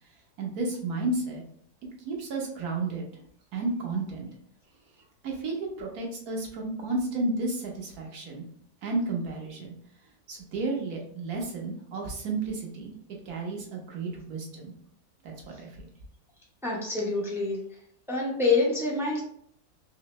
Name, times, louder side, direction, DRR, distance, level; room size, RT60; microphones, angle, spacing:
voice 1, 0.4-1.4 2.0-3.0 3.5-4.3 5.2-8.4 8.8-9.7 10.3-12.9 13.3-14.7 15.2-15.7, right 3 dB, 60° right, 0 dB, 1.3 m, -32 dB
voice 2, 16.6-17.6 18.1-19.2, left 3 dB, 5° right, -4 dB, 0.3 m, -26 dB
3.7 x 3.1 x 3.0 m, 0.66 s
omnidirectional pair, 1.8 m